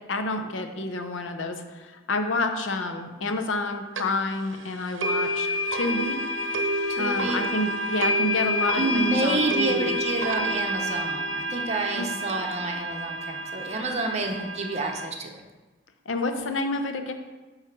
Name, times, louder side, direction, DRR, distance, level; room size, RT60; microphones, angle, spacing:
voice 1, 0.1-6.2 7.0-10.0 12.0-12.1 16.1-17.1, left 2 dB, 85° left, 6 dB, 0.7 m, -29 dB
sound 1, 4.0-4.1 5.0-15.1, equal, 80° right, 0.7 m, -28 dB
voice 2, 6.9-7.4 8.7-15.4, right 2 dB, 35° right, 2 dB, 0.9 m, -29 dB
9.1 x 3.3 x 6.0 m, 1.2 s
head